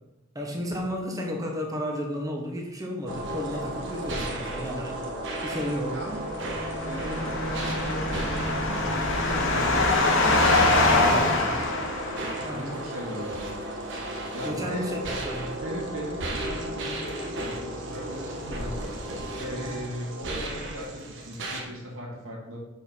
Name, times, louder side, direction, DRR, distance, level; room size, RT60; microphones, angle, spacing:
voice 1, 0.3-5.0 5.4-5.9 11.1-11.4 12.4-12.8 14.4-15.5 16.8-17.0 19.5-19.7, equal, 15° right, 0 dB, 1.2 m, -33 dB
sound 1, 3.1-21.6, right 1 dB, 60° right, 1.3 m, -34 dB
voice 2, 5.9-6.3 6.9-11.6 12.5-13.6 14.3-15.0 15.6-22.6, equal, 75° right, -4 dB, 2.1 m, -38 dB
sound 2, 6.3-12.6, left 2 dB, 60° left, 1.2 m, -24 dB
7.2 x 4.4 x 5.4 m, 0.96 s
head